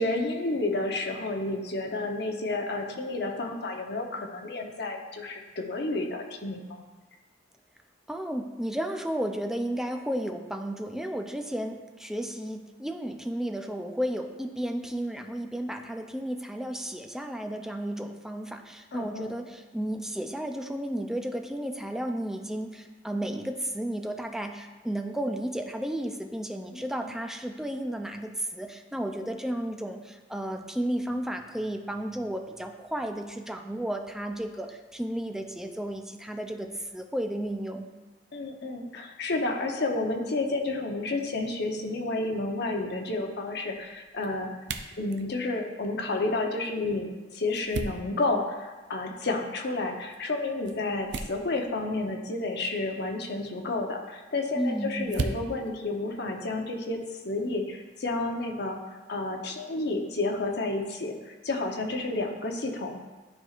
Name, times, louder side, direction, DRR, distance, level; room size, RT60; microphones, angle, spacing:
voice 1, 0.0-6.8 18.9-19.3 26.7-27.1 38.3-44.5 45.0-63.0, left 2 dB, 65° left, 2 dB, 0.8 m, -31 dB
voice 2, 8.1-37.9 54.6-55.3, right 1 dB, 5° right, 5 dB, 0.4 m, -33 dB
sound 1, 42.1-57.0, right 3 dB, 70° right, 0.5 m, -42 dB
11.5 x 4.4 x 2.4 m, 1.2 s
head